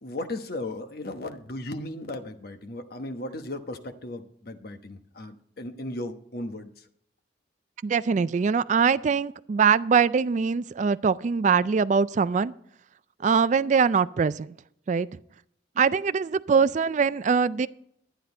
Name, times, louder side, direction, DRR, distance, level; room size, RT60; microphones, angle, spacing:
voice 1, 0.0-6.9, left 1 dB, 55° left, 7 dB, 1.1 m, -36 dB
voice 2, 7.8-12.5 13.2-14.5 14.9-15.1 15.8-17.7, right 6 dB, 40° right, 16 dB, 0.3 m, -22 dB
11.5 x 10.5 x 4.4 m, 0.69 s
head